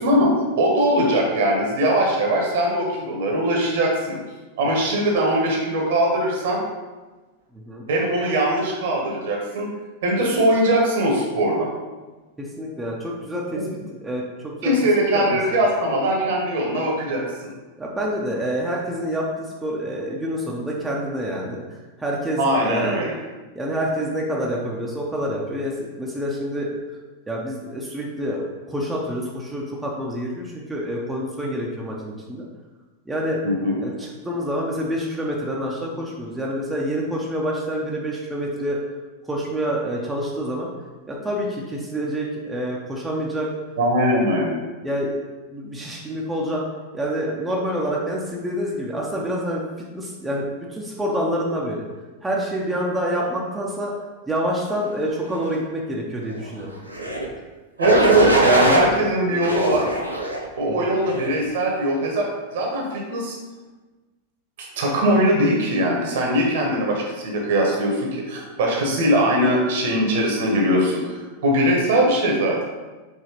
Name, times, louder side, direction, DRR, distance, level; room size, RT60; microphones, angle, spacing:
voice 1, 0.0-4.2 4.6-6.6 7.9-9.7 10.0-11.7 13.5-13.6 14.6-17.2 22.4-23.2 33.4-33.7 43.8-44.6 57.8-60.0 60.6-63.4 64.8-72.6, right 1 dB, 55° right, -1 dB, 1.0 m, -21 dB
voice 2, 7.5-7.8 12.4-13.6 14.0-14.7 15.1-15.4 17.8-23.0 23.5-26.7 27.3-32.5 33.1-33.4 33.8-38.8 39.3-40.7 41.1-43.5 44.8-45.2 45.5-46.6 46.9-51.9 52.2-53.9 54.3-56.7 60.7-60.9, equal, 10° right, -3 dB, 0.6 m, -27 dB
sound 1, 56.9-57.3 57.8-58.9 59.4-60.4 61.0-61.4, right 1 dB, 85° right, 0.5 m, -21 dB
4.9 x 3.1 x 3.0 m, 1.2 s
figure-of-eight pair, 90°, 0 cm